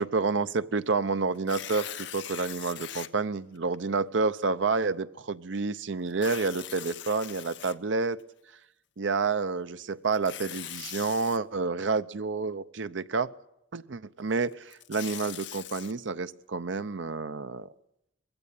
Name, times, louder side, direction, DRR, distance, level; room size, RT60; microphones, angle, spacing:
voice 1, 0.0-8.2 9.0-13.3 13.7-17.7, right 4 dB, 70° right, 13 dB, 0.7 m, -29 dB
Tearing, 1.3-3.1 3.7-3.8 6.1-8.2 10.1-11.4 14.5-15.9, left 11 dB, 65° left, 0.8 m, -41 dB
21.0 x 16.0 x 8.4 m, 0.82 s
head